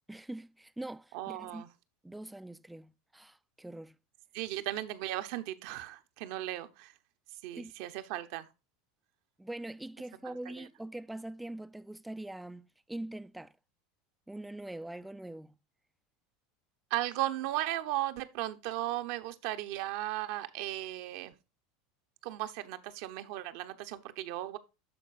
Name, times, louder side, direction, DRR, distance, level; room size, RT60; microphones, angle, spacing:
voice 1, 0.1-1.6 2.0-4.0 7.6-7.7 9.4-13.5 14.3-15.5, right 1 dB, 5° right, 0.4 m, -43 dB
voice 2, 1.1-1.7 4.3-6.9 7.4-8.5 10.5-10.7 16.9-21.4 22.2-24.6, right 15 dB, 60° right, 0.7 m, -36 dB
12.0 x 4.6 x 2.4 m
hypercardioid pair, 85°, 0 cm